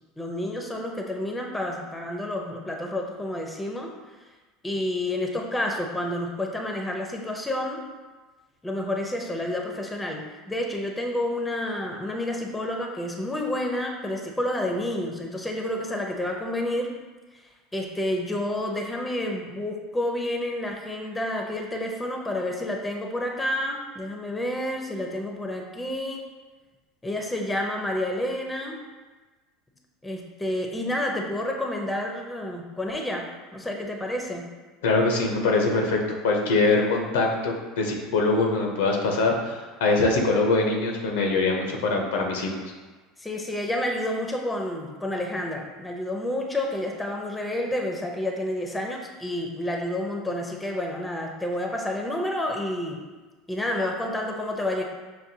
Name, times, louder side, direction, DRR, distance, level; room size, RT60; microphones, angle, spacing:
voice 1, 0.2-3.9 4.6-7.8 8.6-17.0 17.7-26.2 27.0-28.8 30.0-34.4 43.2-53.0 53.5-54.8, left 1 dB, 10° left, 1 dB, 0.6 m, -29 dB
voice 2, 34.8-36.0 36.2-42.6, left 3 dB, 85° left, 1 dB, 0.7 m, -23 dB
5.9 x 2.2 x 2.7 m, 1.3 s
supercardioid pair, 95°, 0 cm